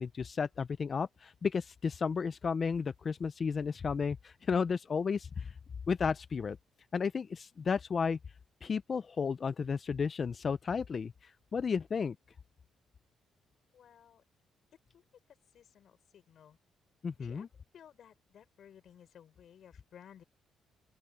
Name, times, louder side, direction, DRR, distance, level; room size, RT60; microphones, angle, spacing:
voice 1, 0.0-5.5 5.9-6.6 6.9-8.2 8.6-11.1 11.5-12.2 17.0-17.5, left 5 dB, 40° left, 0.5 m, -33 dB
voice 2, 13.7-14.2 14.9-15.0 15.5-16.6 17.2-17.5 17.7-20.2, left 9 dB, 65° left, 5.8 m, -57 dB
open air
cardioid pair, 90°, 0 cm